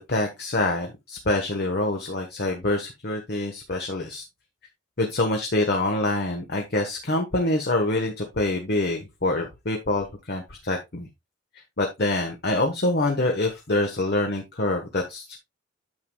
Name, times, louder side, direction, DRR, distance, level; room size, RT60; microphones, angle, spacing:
voice 1, 0.1-4.2 5.0-11.1 11.8-15.4, left 2 dB, 55° left, 2 dB, 1.3 m, -25 dB
9.4 x 7.2 x 2.3 m, 0.21 s
head